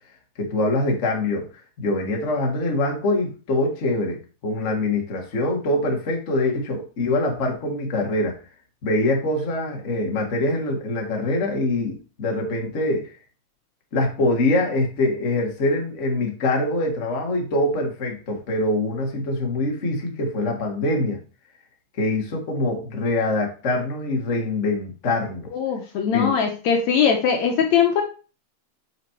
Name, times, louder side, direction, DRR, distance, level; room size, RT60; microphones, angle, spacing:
voice 1, 0.4-1.5 1.8-8.4 8.8-13.1 13.9-21.2 22.0-25.5 26.1-26.3, left 2 dB, 45° left, 0 dB, 0.9 m, -24 dB
voice 2, 25.5-28.0, left 7 dB, 75° left, 2 dB, 1.8 m, -20 dB
5.9 x 5.1 x 4.4 m, 0.34 s
omnidirectional pair, 3.9 m